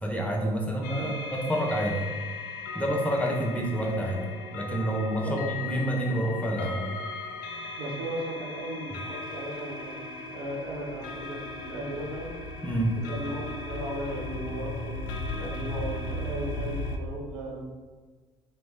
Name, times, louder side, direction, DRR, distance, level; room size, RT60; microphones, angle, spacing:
voice 1, 0.0-2.0 2.7-4.2 4.5-6.8 12.6-13.0, right 1 dB, 10° left, -1 dB, 0.8 m, -28 dB
sound 1, 0.8-17.0, left 3 dB, 65° left, 0.5 m, -37 dB
voice 2, 7.8-12.3 13.1-17.6, right 1 dB, 65° right, -4 dB, 1.3 m, -36 dB
3.1 x 3.0 x 3.6 m, 1.4 s
figure-of-eight pair, 55°, 15 cm